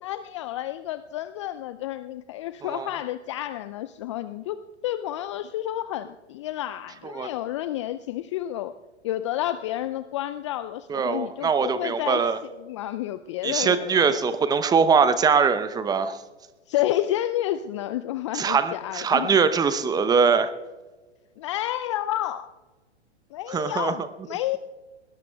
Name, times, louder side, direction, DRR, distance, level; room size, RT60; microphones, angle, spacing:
voice 1, 0.0-8.7 9.0-12.3 12.6-14.1 16.7-19.4 21.4-22.5 23.3-24.0 24.3-24.6, left 13 dB, 30° left, 12 dB, 0.4 m, -30 dB
voice 2, 10.9-12.4 13.4-16.2 18.3-20.5 23.5-23.9, right 5 dB, 10° right, 13 dB, 0.7 m, -22 dB
22.0 x 19.5 x 2.3 m, 1.2 s
figure-of-eight pair, 110°, 34 cm